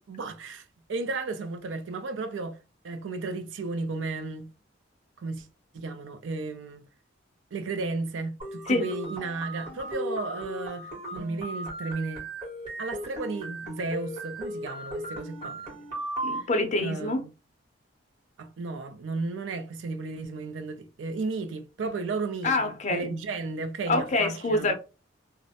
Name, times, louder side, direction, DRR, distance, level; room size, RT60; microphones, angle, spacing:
voice 1, 0.1-2.6 2.8-4.5 5.2-5.5 5.7-6.9 7.5-12.3 12.8-15.8 16.3-16.5 16.8-17.3 18.4-24.7, right 3 dB, 75° right, 0.4 m, -34 dB
sound 1, 8.4-16.4, right 1 dB, 30° right, 1.2 m, -37 dB
voice 2, 16.2-17.2 22.4-23.1 23.9-24.7, left 2 dB, 40° left, 0.5 m, -26 dB
2.4 x 2.0 x 2.7 m
head